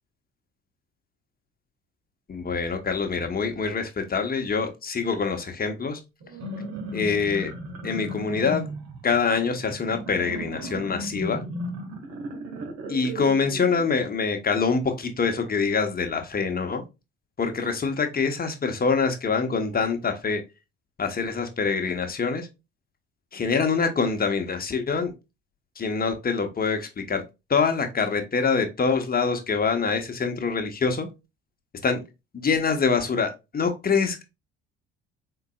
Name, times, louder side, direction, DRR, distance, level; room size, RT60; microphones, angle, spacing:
voice 1, 2.3-6.0 6.9-7.5 7.8-8.6 9.0-11.5 12.9-16.8 17.4-20.4 21.0-22.5 23.3-25.1 25.8-27.2 27.5-31.1 31.8-32.0 32.3-34.2, left 5 dB, 30° left, 1.0 m, -25 dB
sound 1, 6.2-14.1, equal, 60° right, 1.3 m, -36 dB
3.8 x 3.8 x 2.3 m
hypercardioid pair, 55°, 31 cm